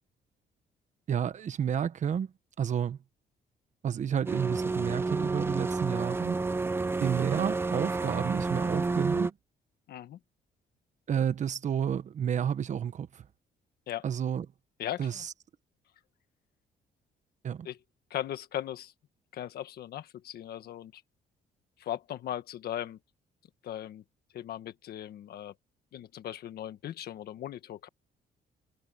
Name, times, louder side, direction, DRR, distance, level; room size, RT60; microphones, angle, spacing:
voice 1, 1.1-2.3 2.6-3.0 3.8-6.4 7.0-9.3 11.1-13.2 14.0-14.4 15.0-15.3 17.4-17.7, right 8 dB, 45° right, 1.3 m, -30 dB
sound 1, 4.3-9.3, right 3 dB, 15° right, 0.7 m, -30 dB
voice 2, 9.9-10.2 13.9-14.0 14.8-15.3 17.6-17.8 18.1-18.9 19.3-21.0 21.8-23.0 23.6-24.0 24.3-25.5 25.9-27.9, left 11 dB, 65° left, 1.5 m, -38 dB
cardioid pair, 145°, 17 cm